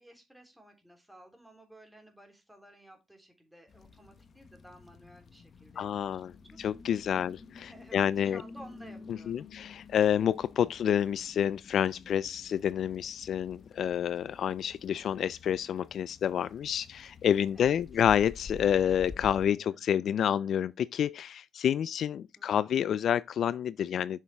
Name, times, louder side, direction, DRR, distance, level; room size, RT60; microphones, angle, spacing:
voice 1, 0.0-6.2 6.5-6.6 7.1-7.3 7.6-9.5 17.5-18.0 22.4-22.6, right 1 dB, 5° right, 3.3 m, -54 dB
sound 1, 3.7-19.5, left 4 dB, 50° left, 1.0 m, -50 dB
voice 2, 5.8-6.3 6.6-8.4 9.1-24.2, left 9 dB, 65° left, 0.3 m, -29 dB
7.2 x 6.4 x 3.4 m
cardioid pair, 90°, 0 cm